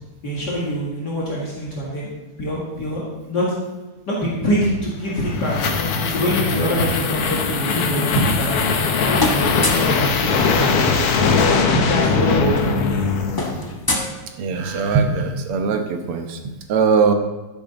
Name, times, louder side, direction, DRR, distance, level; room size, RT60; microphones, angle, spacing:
voice 1, 0.2-2.1 2.4-3.6 4.1-5.6 6.1-8.5 9.0-11.3 11.7-12.9, equal, 50° left, -5 dB, 2.5 m, -24 dB
sound 1, 4.9-13.8, left 5 dB, 85° left, 2.0 m, -20 dB
sound 2, 8.1-8.9 9.2-10.0 11.4-11.5 11.7-11.9 12.2-14.8, left 1 dB, 20° left, 0.6 m, -27 dB
voice 2, 14.4-17.1, right 5 dB, 80° right, 6 dB, 2.0 m, -21 dB
12.0 x 9.9 x 4.0 m, 1.1 s
omnidirectional pair, 2.4 m